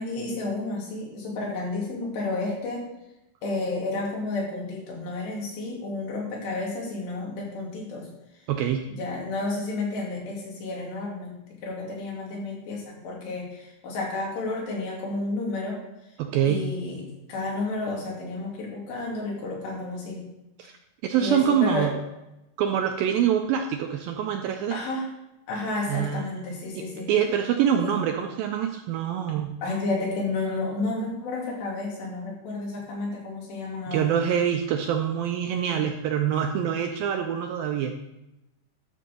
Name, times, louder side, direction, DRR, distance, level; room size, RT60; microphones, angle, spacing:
voice 1, 0.0-2.8 3.4-8.1 8.9-15.8 16.4-20.2 21.2-21.9 24.7-25.1 25.5-27.1 27.8-27.9 29.6-34.1, left 2 dB, 90° left, -3 dB, 4.6 m, -31 dB
voice 2, 8.5-8.9 16.2-16.7 20.6-20.7 21.0-22.0 22.6-24.8 25.9-26.3 26.7-29.6 33.9-38.0, right 8 dB, 80° right, 4 dB, 2.1 m, -25 dB
12.0 x 4.1 x 6.9 m, 0.94 s
omnidirectional pair, 4.7 m